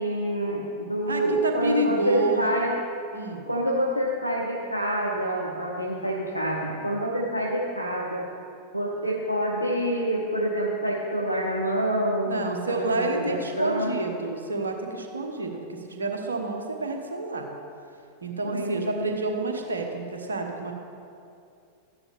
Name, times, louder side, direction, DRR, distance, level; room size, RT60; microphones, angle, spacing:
voice 1, 0.0-2.8 3.5-8.3 8.7-14.0 18.4-19.2, right 1 dB, 90° right, -2 dB, 0.8 m, -27 dB
voice 2, 1.1-2.7 3.1-3.4 12.3-17.5 18.2-20.7, right 2 dB, 75° right, 3 dB, 1.3 m, -29 dB
13.5 x 9.8 x 3.6 m, 2.5 s
figure-of-eight pair, 90°, 0 cm